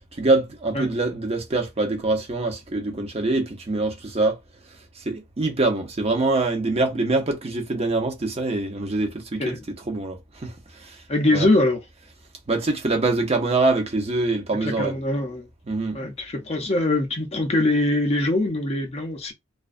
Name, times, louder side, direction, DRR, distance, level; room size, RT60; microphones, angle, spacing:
voice 1, 0.1-4.4 5.1-9.6 9.9-11.0 11.3-11.5 12.5-15.0 15.7-16.0, right 2 dB, 30° right, 0.6 m, -24 dB
voice 2, 11.1-11.8 14.6-15.5 15.9-19.3, left 2 dB, 30° left, 0.5 m, -23 dB
2.3 x 2.2 x 2.4 m
head